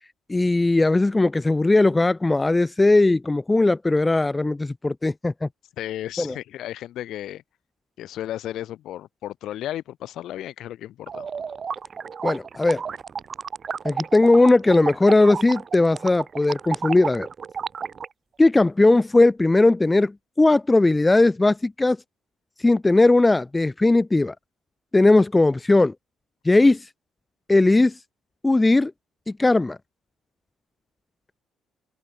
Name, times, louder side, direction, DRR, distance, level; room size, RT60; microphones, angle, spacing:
voice 1, 0.3-5.5 6.2-6.3 12.2-12.8 13.8-17.3 18.4-22.0 22.6-24.3 24.9-25.9 26.4-26.9 27.5-27.9 28.4-28.9 29.3-29.8, left 2 dB, 10° left, 0.4 m, -18 dB
voice 2, 5.8-7.4 8.0-11.3, left 12 dB, 65° left, 3.4 m, -34 dB
sound 1, 11.1-18.1, right 6 dB, 30° right, 1.0 m, -32 dB
open air
cardioid pair, 160°, 0 cm